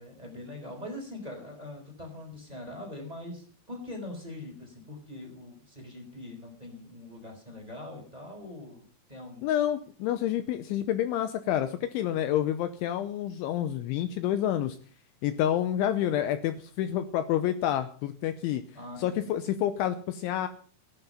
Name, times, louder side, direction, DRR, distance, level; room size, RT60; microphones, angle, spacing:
voice 1, 0.0-9.5 18.7-19.4, left 1 dB, 10° right, 3 dB, 3.7 m, -42 dB
voice 2, 9.4-14.8 15.2-18.6 19.0-20.5, left 11 dB, 80° left, 10 dB, 3.0 m, -28 dB
16.5 x 10.5 x 5.7 m, 0.43 s
omnidirectional pair, 5.9 m